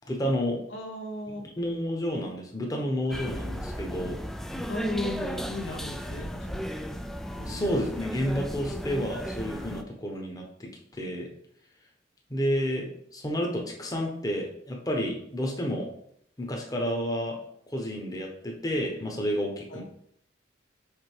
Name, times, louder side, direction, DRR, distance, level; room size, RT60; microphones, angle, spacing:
voice 1, 0.1-0.6 1.6-4.2 7.4-10.7 11.0-11.3 12.3-15.9 16.4-17.4 17.7-19.8, equal, 20° left, 0 dB, 1.0 m, -30 dB
voice 2, 0.7-1.4 4.7-6.6 7.3-7.8 19.7-19.8, left 1 dB, 75° left, 2 dB, 1.0 m, -36 dB
sound 1, 3.1-9.8, equal, ahead, 0.3 m, -35 dB
5.1 x 4.3 x 4.5 m, 0.71 s
head